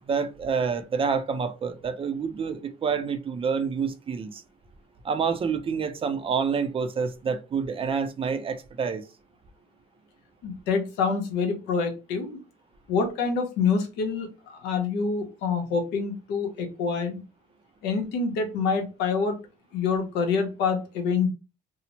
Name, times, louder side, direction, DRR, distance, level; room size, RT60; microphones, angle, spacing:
voice 1, 0.1-4.4 5.0-9.0, right 6 dB, 35° right, 0.4 m, -28 dB
voice 2, 10.4-12.4 12.9-17.2 17.8-19.4 19.7-21.3, left 5 dB, 90° left, 0.8 m, -26 dB
2.8 x 2.0 x 2.8 m
cardioid pair, 110°, 17 cm